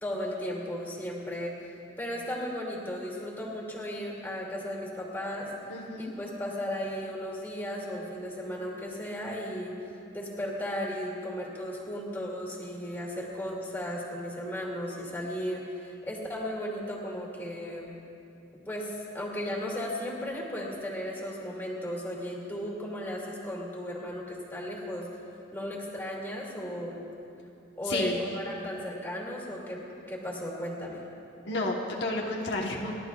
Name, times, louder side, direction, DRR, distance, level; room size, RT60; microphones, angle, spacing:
voice 1, 0.0-9.7 10.1-17.9 18.7-25.2 25.5-27.1 27.8-29.8 30.1-31.0, equal, 10° left, -4 dB, 2.3 m, -35 dB
voice 2, 5.7-6.1 27.8-28.2 31.4-32.9, left 2 dB, 65° left, -1 dB, 1.1 m, -31 dB
30.0 x 12.0 x 2.4 m, 2.7 s
head